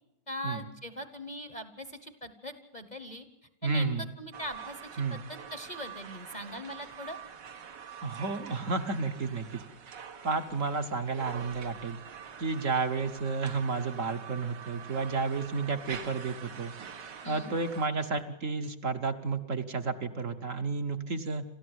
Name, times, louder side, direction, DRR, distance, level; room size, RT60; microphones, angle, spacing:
voice 1, 0.3-3.3 3.6-7.2 17.2-17.6, equal, 30° left, 10 dB, 1.0 m, -41 dB
voice 2, 3.6-4.0 5.0-5.2 8.0-9.5 10.2-12.0 12.4-16.7 17.3-21.4, right 4 dB, 50° right, 6 dB, 1.2 m, -31 dB
sound 1, 4.3-17.9, right 7 dB, 80° right, 2.0 m, -46 dB
27.5 x 13.5 x 8.0 m, 0.92 s
omnidirectional pair, 1.9 m